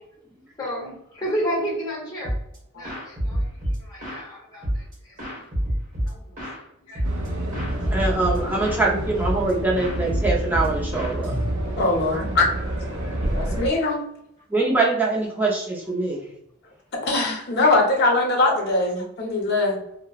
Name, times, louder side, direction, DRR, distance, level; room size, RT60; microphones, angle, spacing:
voice 1, 0.6-2.4 2.7-3.5 3.8-5.4 6.9-7.0 13.3-13.5, equal, 20° left, -3 dB, 0.9 m, -31 dB
sound 1, 2.2-2.6 2.8-4.3 4.6-6.6 7.0-7.3 7.5-8.9 9.2-9.5 9.8-11.9, equal, 40° right, 1.0 m, -28 dB
sound 2, 7.0-13.7, right 1 dB, 85° right, 0.5 m, -29 dB
voice 2, 7.9-11.4 12.1-12.3 14.5-16.2, right 2 dB, 10° right, -3 dB, 0.5 m, -23 dB
voice 3, 11.8-12.5 13.3-14.1 17.0-19.8, left 2 dB, 50° left, 0 dB, 0.6 m, -21 dB
2.8 x 2.0 x 2.3 m, 0.78 s
head